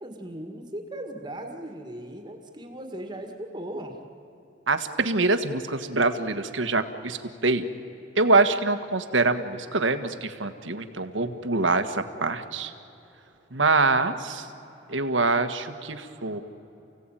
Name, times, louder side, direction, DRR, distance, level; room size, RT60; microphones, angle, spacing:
voice 1, 0.0-4.0, right 1 dB, 20° right, 4 dB, 2.0 m, -38 dB
voice 2, 4.7-7.6 8.1-12.7 13.5-14.5 14.9-16.4, right 3 dB, 80° right, 9 dB, 1.6 m, -24 dB
29.0 x 17.0 x 9.1 m, 2.9 s
head